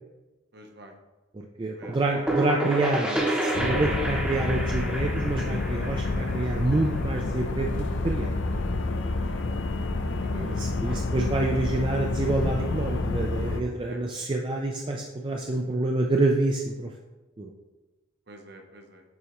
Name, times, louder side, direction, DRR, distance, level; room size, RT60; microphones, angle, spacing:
voice 1, 0.5-0.9 1.7-2.3 9.1-9.4 10.2-11.0 13.9-14.0 18.3-19.0, right 1 dB, 50° right, 3 dB, 0.8 m, -48 dB
voice 2, 1.3-8.3 10.4-16.9 17.4-17.5, right 2 dB, 25° right, 1 dB, 0.3 m, -27 dB
sound 1, 1.8-7.4, right 1 dB, 5° right, 0.8 m, -30 dB
sound 2, 3.5-13.6, left 2 dB, 60° left, 0.5 m, -29 dB
8.4 x 4.1 x 3.0 m, 1.1 s
head